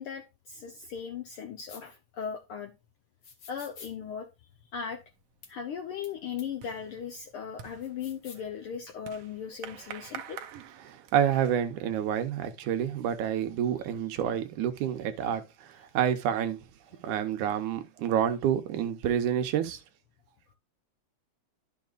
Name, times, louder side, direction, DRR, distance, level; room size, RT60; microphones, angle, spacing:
voice 1, 0.0-2.7 3.5-4.3 4.7-5.0 5.5-10.4, left 7 dB, 75° left, 1.3 m, -38 dB
sound 1, 1.7-1.8 3.2-3.9 5.4-5.5 6.0-6.1 6.4-6.5 7.8-8.5, left 5 dB, 50° left, 1.3 m, -49 dB
sound 2, 5.0-5.4 5.7-11.5, right 9 dB, 70° right, 1.5 m, -47 dB
voice 2, 10.9-16.7 17.0-19.8, right 9 dB, 90° right, 2.4 m, -28 dB
12.0 x 5.8 x 2.4 m
omnidirectional pair, 3.4 m